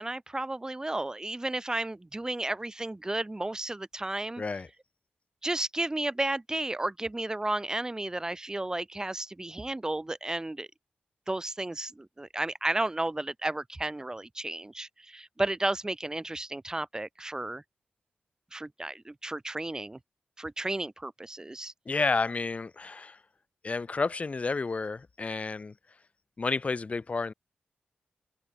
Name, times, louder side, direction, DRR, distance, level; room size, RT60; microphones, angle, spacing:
voice 1, 0.0-4.4 5.4-10.7 11.3-17.6 18.5-20.0 20.4-21.7, right 2 dB, 20° right, 2.4 m, -33 dB
voice 2, 4.4-4.7 21.9-23.2 23.6-25.7 26.4-27.3, left 4 dB, 45° left, 2.7 m, -30 dB
cardioid pair, 80°, 3 cm